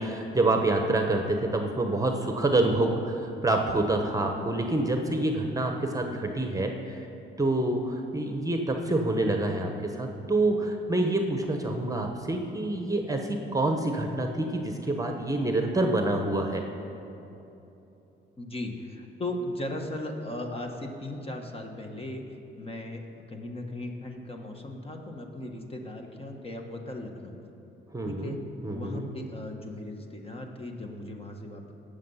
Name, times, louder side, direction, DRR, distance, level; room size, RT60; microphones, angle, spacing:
voice 1, 0.0-7.1 7.4-16.6 27.9-28.4 28.6-29.1, right 2 dB, 15° right, 3 dB, 1.0 m, -27 dB
voice 2, 18.4-22.2 22.6-23.0 23.3-27.4 28.0-28.4 28.7-31.7, left 1 dB, 30° left, 3 dB, 1.4 m, -37 dB
17.5 x 6.7 x 5.7 m, 2.9 s
cardioid pair, 90°, 20 cm